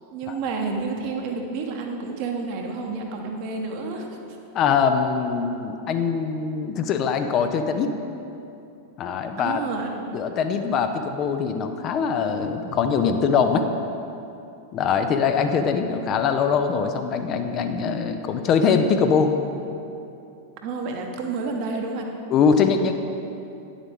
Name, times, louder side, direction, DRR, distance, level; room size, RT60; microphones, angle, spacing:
voice 1, 0.1-4.2 9.4-10.0 20.6-22.1, right 4 dB, 45° right, 2 dB, 1.0 m, -30 dB
voice 2, 4.5-8.0 9.0-9.6 10.1-13.6 14.7-19.4 22.3-22.9, left 6 dB, 35° left, 7 dB, 0.5 m, -22 dB
10.0 x 7.3 x 3.6 m, 2.8 s
figure-of-eight pair, 90°, 0 cm